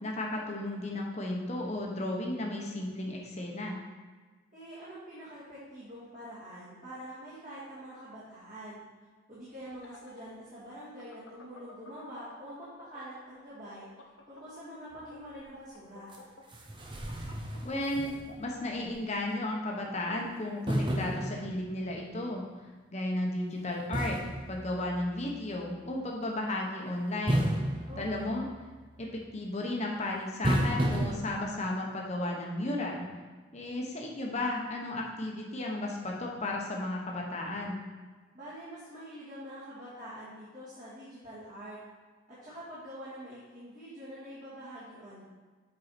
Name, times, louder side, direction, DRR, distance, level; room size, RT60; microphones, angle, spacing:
voice 1, 0.0-3.8 17.6-22.5 22.9-24.2 24.5-27.5 28.0-28.5 29.0-33.1 33.5-37.8, left 1 dB, 35° left, -1 dB, 1.1 m, -34 dB
voice 2, 4.5-8.8 9.3-13.9 14.3-16.1 27.9-28.4 38.3-41.8 42.3-45.2, equal, 40° right, -12 dB, 2.2 m, -45 dB
sound 1, 9.6-13.2 13.5-18.9, left 3 dB, 65° left, 0.8 m, -52 dB
sound 2, 16.1-16.2 16.5-18.6 18.9-19.0 20.7-22.0 23.9-25.3 27.3-28.8 30.4-31.2, right 1 dB, 25° right, 0.7 m, -32 dB
8.0 x 4.7 x 4.4 m, 1.4 s
head